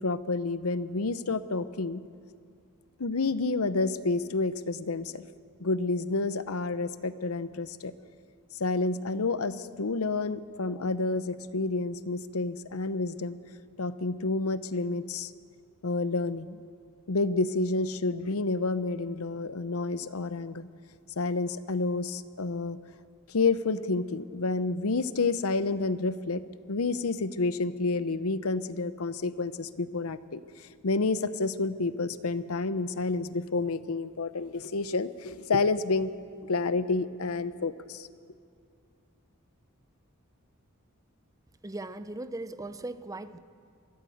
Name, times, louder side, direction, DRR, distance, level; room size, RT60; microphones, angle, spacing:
voice 1, 0.0-2.0 3.0-5.2 5.6-7.9 8.6-13.4 13.8-15.3 15.8-16.6 17.1-20.7 21.2-22.8 23.3-26.4 26.7-36.1 36.4-38.1, left 3 dB, 80° left, 14 dB, 0.8 m, -29 dB
voice 2, 41.6-43.4, right 2 dB, 15° right, 12 dB, 0.7 m, -38 dB
23.5 x 15.5 x 7.9 m, 2.3 s
head